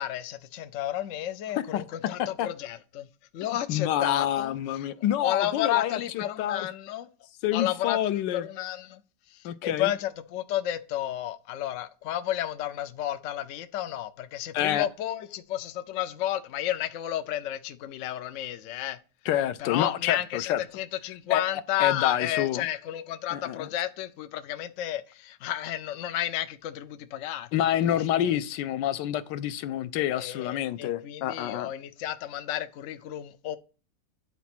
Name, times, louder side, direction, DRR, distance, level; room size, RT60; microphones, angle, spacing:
voice 1, 0.0-3.1 3.3-4.9 5.2-7.1 7.5-8.0 8.3-9.0 9.3-19.0 19.6-27.5 27.8-27.9 30.2-33.6, left 12 dB, 90° left, 0.6 m, -32 dB
voice 2, 3.7-6.7 7.4-8.5 9.4-9.9 14.5-14.9 19.3-20.6 21.3-21.5 21.8-22.6 23.3-23.7 27.5-31.7, left 11 dB, 75° left, 1.2 m, -28 dB
9.6 x 4.1 x 5.9 m
omnidirectional pair, 2.1 m